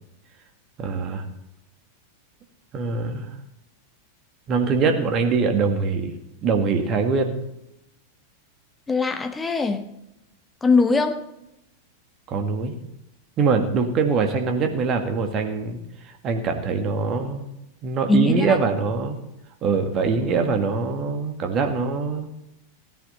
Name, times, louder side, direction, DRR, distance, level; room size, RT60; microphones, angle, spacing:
voice 1, 0.8-1.2 2.7-3.3 4.5-6.1 6.4-7.4 12.3-12.8 13.4-17.4 17.8-19.2 19.6-22.3, right 4 dB, 30° right, 5 dB, 1.9 m, -23 dB
voice 2, 8.9-9.9 10.6-11.2 18.1-18.6, left 3 dB, 15° left, 7 dB, 1.3 m, -21 dB
16.5 x 10.5 x 4.3 m, 0.88 s
figure-of-eight pair, 90°, 0 cm